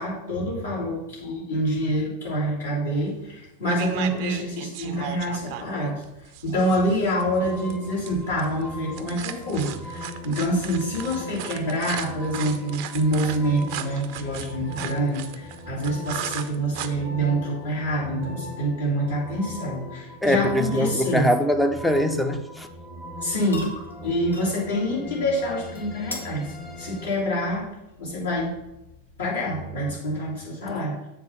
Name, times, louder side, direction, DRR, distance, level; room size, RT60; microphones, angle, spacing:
voice 1, 0.0-6.0 6.4-21.3 23.2-23.7 24.0-27.7 28.0-28.5 29.2-31.0, equal, 70° left, -6 dB, 2.9 m, -26 dB
sound 1, 3.1-3.3 3.6-16.9, right 11 dB, 45° right, 0.5 m, -36 dB
sound 2, 7.2-27.1, left 1 dB, 20° left, 1.0 m, -40 dB
voice 2, 20.2-22.7, equal, 5° left, 6 dB, 0.5 m, -22 dB
sound 3, 23.1-29.5, left 1 dB, 85° left, 1.1 m, -43 dB
7.5 x 3.7 x 5.7 m, 0.92 s
figure-of-eight pair, 90°, 0 cm